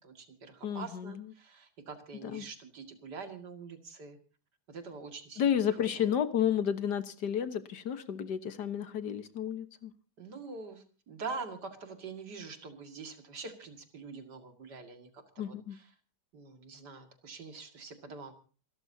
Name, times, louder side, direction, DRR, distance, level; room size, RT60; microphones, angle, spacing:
voice 1, 0.0-4.2 4.7-5.5 6.0-6.1 10.2-15.9 16.3-18.3, right 4 dB, 70° right, 6 dB, 2.8 m, -45 dB
voice 2, 0.6-1.1 2.2-2.5 5.4-9.9 15.4-15.8, left 9 dB, 70° left, 11 dB, 1.8 m, -31 dB
27.0 x 13.5 x 2.8 m, 0.37 s
omnidirectional pair, 1.8 m